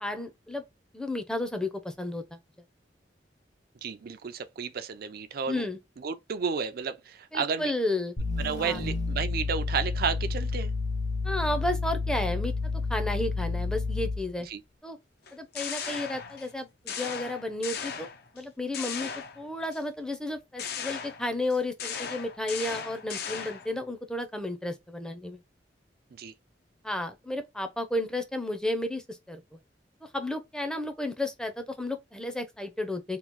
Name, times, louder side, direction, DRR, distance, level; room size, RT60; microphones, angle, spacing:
voice 1, 0.0-0.6 0.9-2.4 5.5-5.8 7.3-8.2 8.6-8.8 11.2-14.5 14.8-15.0 15.3-18.1 18.3-19.1 19.4-25.4 26.8-29.6 30.0-33.2, left 1 dB, 5° left, 0.5 m, -32 dB
voice 2, 3.8-5.7 6.0-7.7 8.4-10.7 14.5-14.6 26.1-26.3, right 6 dB, 60° right, 0.4 m, -32 dB
sound 1, 8.2-14.3, left 3 dB, 45° left, 0.9 m, -30 dB
sound 2, 15.3-16.5 16.9-18.4 18.7-19.8 20.6-23.8, left 7 dB, 60° left, 0.5 m, -37 dB
3.0 x 2.3 x 3.4 m
head